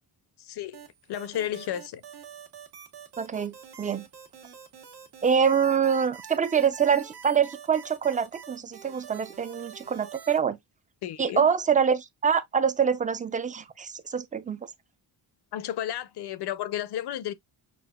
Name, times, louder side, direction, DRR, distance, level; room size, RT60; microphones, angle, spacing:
voice 1, 0.4-0.8 1.1-2.0 11.0-11.5 15.5-17.3, left 11 dB, 65° left, 0.6 m, -32 dB
sound 1, 0.7-10.4, right 8 dB, 65° right, 1.3 m, -46 dB
voice 2, 3.2-4.0 5.2-10.6 11.2-14.7, right 7 dB, 20° right, 0.4 m, -25 dB
6.0 x 2.5 x 2.3 m
cardioid pair, 120°, 43 cm